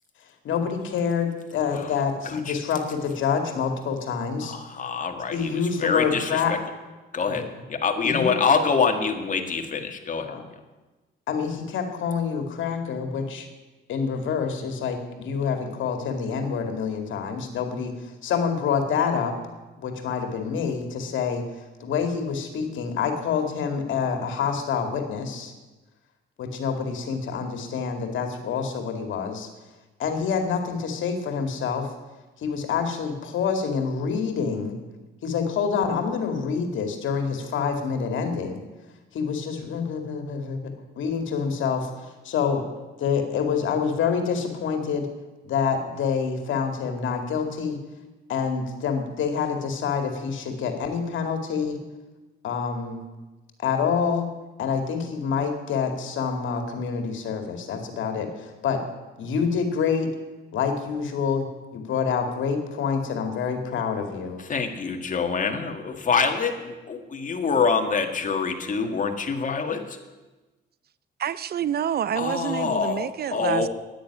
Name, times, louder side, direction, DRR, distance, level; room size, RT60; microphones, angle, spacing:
voice 1, 0.4-4.5 5.3-6.5 7.3-7.4 8.0-8.4 10.3-10.4 11.3-13.5 13.9-19.3 19.8-21.4 21.8-25.5 26.4-29.5 30.0-31.9 32.4-34.8 35.2-38.6 39.1-41.9 42.2-42.6 43.0-45.1 45.4-47.8 48.3-51.8 52.4-53.0 53.6-54.3 54.6-58.8 59.2-60.1 60.5-61.5 61.7-64.4, left 6 dB, 75° left, 5 dB, 2.3 m, -27 dB
voice 2, 2.2-2.6 4.4-6.6 7.1-7.4 7.7-10.3 64.4-70.0 72.2-73.7, left 5 dB, 40° left, 5 dB, 1.9 m, -25 dB
voice 3, 71.2-73.7, right 9 dB, 50° right, 17 dB, 0.6 m, -27 dB
10.5 x 9.4 x 9.9 m, 1.2 s
cardioid pair, 90°, 20 cm